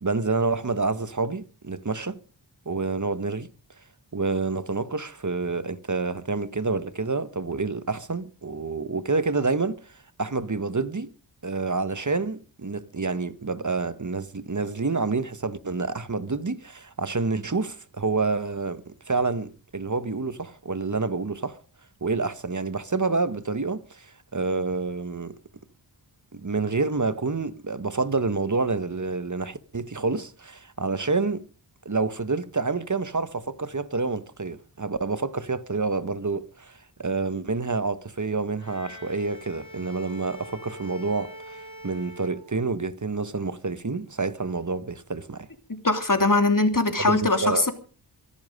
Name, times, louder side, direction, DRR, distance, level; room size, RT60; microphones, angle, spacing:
voice 1, 0.0-2.2 2.7-3.5 4.1-9.8 10.2-11.1 11.4-21.6 22.0-24.1 24.3-25.4 26.3-31.4 31.8-41.6 41.8-45.5 47.0-47.7, right 3 dB, 40° right, 1.3 m, -28 dB
Bowed string instrument, 38.6-43.0, equal, 80° left, 2.6 m, -44 dB
voice 2, 45.7-47.7, left 2 dB, 45° left, 3.1 m, -21 dB
24.0 x 11.0 x 5.3 m
wide cardioid pair, 50°, 45 cm